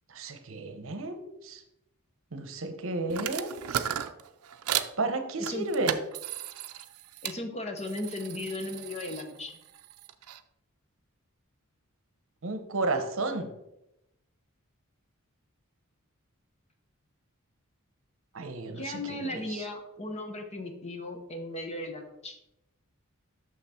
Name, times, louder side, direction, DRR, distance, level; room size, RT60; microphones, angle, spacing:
voice 1, 0.1-1.6 2.3-3.8 5.0-6.0 12.4-13.5 18.3-19.6, right 2 dB, 65° right, 8 dB, 0.8 m, -32 dB
sound 1, 3.1-4.9 5.4-7.4 7.8-10.4, right 10 dB, 85° right, 0.5 m, -36 dB
voice 2, 7.2-9.6 18.7-22.4, left 2 dB, 30° left, 5 dB, 0.9 m, -36 dB
6.5 x 5.7 x 4.3 m, 0.86 s
head